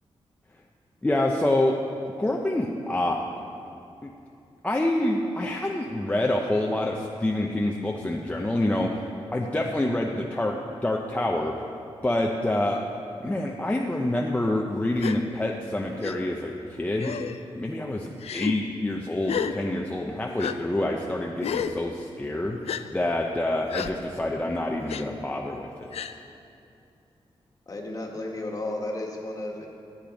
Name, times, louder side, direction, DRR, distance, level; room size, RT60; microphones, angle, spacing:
voice 1, 1.0-1.7 2.2-3.2 4.0-4.1 4.6-10.5 10.8-11.5 12.0-12.8 13.2-17.1 17.6-22.6 22.9-25.9, left 1 dB, 15° left, -1 dB, 0.6 m, -27 dB
Gasp, 15.0-15.2 16.0-16.2 17.0-17.4 18.2-18.6 19.3-19.5 20.4-20.6 21.4-21.8 22.7-22.8 23.7-23.9 24.9-25.0 25.9-26.1, left 8 dB, 80° left, 0.4 m, -30 dB
voice 2, 27.7-29.7, left 2 dB, 35° left, 0 dB, 1.5 m, -33 dB
13.0 x 8.7 x 5.1 m, 2.6 s
wide cardioid pair, 145°, 10 cm